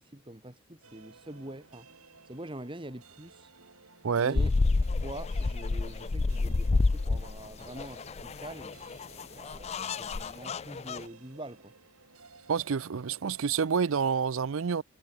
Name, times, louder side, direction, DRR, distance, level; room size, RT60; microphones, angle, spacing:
voice 1, 0.0-1.9 2.3-3.5 4.2-4.5 5.0-11.7, right 1 dB, 20° right, 1.7 m, -45 dB
sound 1, 0.8-14.3, right 4 dB, 85° right, 7.4 m, -56 dB
voice 2, 4.0-4.4 12.5-14.8, right 6 dB, 65° right, 0.5 m, -28 dB
sound 2, 4.3-11.0, left 3 dB, 30° left, 0.4 m, -29 dB
head